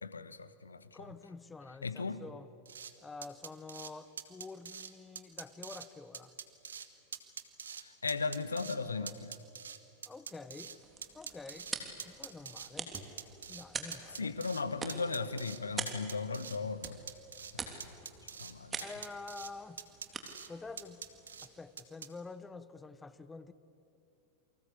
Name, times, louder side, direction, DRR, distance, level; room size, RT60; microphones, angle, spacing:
voice 1, 0.0-1.1 1.8-2.2 7.8-9.4 14.1-17.0 17.5-17.9 18.2-18.8, left 4 dB, 75° left, 14 dB, 1.4 m, -37 dB
voice 2, 0.9-2.5 3.0-6.3 10.0-10.8 11.1-11.7 12.0-13.0 13.5-14.3 18.8-19.8 20.5-21.0 21.4-23.5, left 3 dB, 10° left, 14 dB, 1.2 m, -48 dB
sound 1, 2.7-2.9 3.2-3.9 4.2-4.9 5.2-5.9 6.1-6.9 7.1-8.8 9.1-10.8 11.0-12.7 12.9-13.7 13.9-14.6 14.9-15.6 15.9-16.6 16.8-17.5 17.8-18.5 18.8-19.5 19.8-20.5 20.8-21.5 21.8-22.1, right 7 dB, 70° right, 1.6 m, -45 dB
sound 2, 10.6-21.9, right 4 dB, 15° right, 3.4 m, -46 dB
28.5 x 24.5 x 8.4 m, 2.8 s
figure-of-eight pair, 90°, 0 cm